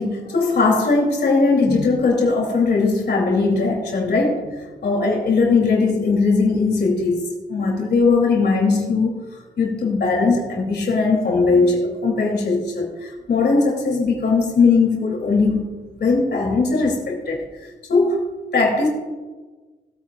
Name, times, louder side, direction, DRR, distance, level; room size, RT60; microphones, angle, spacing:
voice 1, 0.0-9.2 9.6-15.7 16.0-17.4 17.9-18.2 18.5-18.9, left 4 dB, 65° left, -1 dB, 2.7 m, -19 dB
19.5 x 9.2 x 2.3 m, 1.3 s
wide cardioid pair, 115°, 18 cm